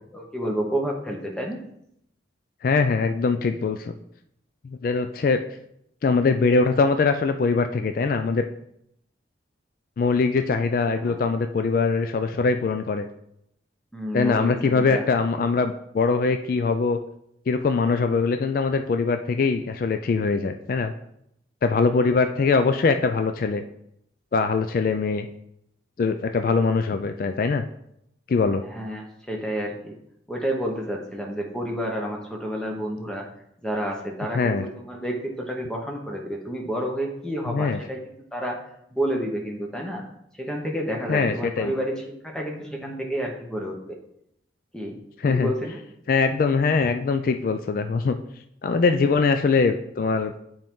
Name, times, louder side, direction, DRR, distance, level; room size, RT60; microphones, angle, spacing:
voice 1, 0.1-1.6 10.9-11.2 13.9-15.0 15.4-15.5 28.7-30.0 30.3-33.3 33.6-38.0 38.3-38.6 38.9-40.0 40.4-44.0 44.7-45.0 45.3-45.8, equal, 5° left, 0 dB, 0.8 m, -30 dB
voice 2, 2.6-3.9 4.6-5.4 6.0-8.4 10.0-13.1 14.1-17.0 17.5-20.9 21.6-23.6 24.3-25.3 26.0-27.7 28.3-28.6 34.3-34.7 37.5-37.8 41.1-41.7 45.2-45.5 46.1-48.2 48.6-50.3, left 4 dB, 50° left, 7 dB, 0.3 m, -22 dB
7.5 x 4.4 x 3.6 m, 0.75 s
head